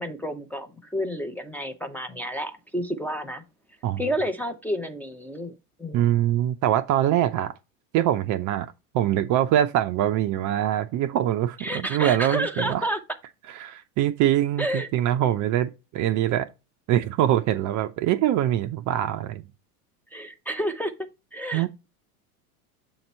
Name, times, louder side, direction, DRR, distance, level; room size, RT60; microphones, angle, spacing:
voice 1, 0.0-3.4 4.0-6.1 11.6-13.0 14.6-14.9 20.1-20.9 21.3-21.7, equal, 5° left, 0.7 m, -30 dB
voice 2, 5.9-7.5 7.9-12.9 13.6-16.5 16.9-19.5 21.5-21.7, right 12 dB, 45° right, 0.6 m, -23 dB
7.2 x 2.9 x 5.4 m
hypercardioid pair, 95°, 44 cm